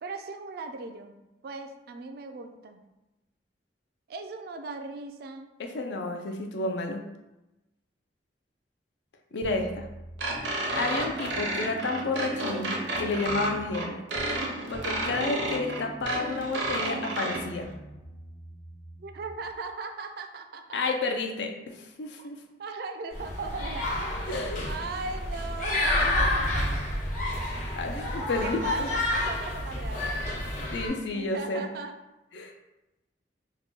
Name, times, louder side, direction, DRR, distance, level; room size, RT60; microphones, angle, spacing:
voice 1, 0.0-1.2 1.4-2.8 4.1-5.5 19.0-20.8 22.2-22.3 22.6-24.3 24.6-26.8 28.4-30.7 31.1-31.9, right 3 dB, 55° right, 6 dB, 0.3 m, -38 dB
voice 2, 5.6-7.0 9.3-9.9 10.8-14.0 14.7-17.7 20.7-22.4 24.3-24.6 27.3-27.4 27.8-28.9 30.7-31.7 32.3-32.5, left 3 dB, 75° left, 4 dB, 0.5 m, -31 dB
sound 1, 9.4-14.5 14.7-19.5, right 1 dB, 30° left, 0.6 m, -46 dB
sound 2, 10.2-17.4, right 1 dB, 85° right, 0.7 m, -31 dB
sound 3, 23.1-30.9, left 1 dB, 45° left, 0.9 m, -29 dB
2.9 x 2.2 x 4.2 m, 0.98 s
head